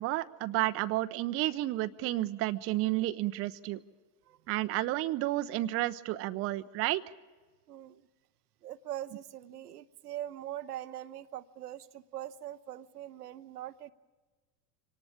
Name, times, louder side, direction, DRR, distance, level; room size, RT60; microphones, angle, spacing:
voice 1, 0.0-3.8 4.5-7.0, right 16 dB, 30° right, 12 dB, 0.6 m, -31 dB
voice 2, 7.7-8.1 8.6-13.9, right 12 dB, 70° right, 14 dB, 0.7 m, -42 dB
25.0 x 18.5 x 7.3 m, 1.3 s
figure-of-eight pair, 80°, 49 cm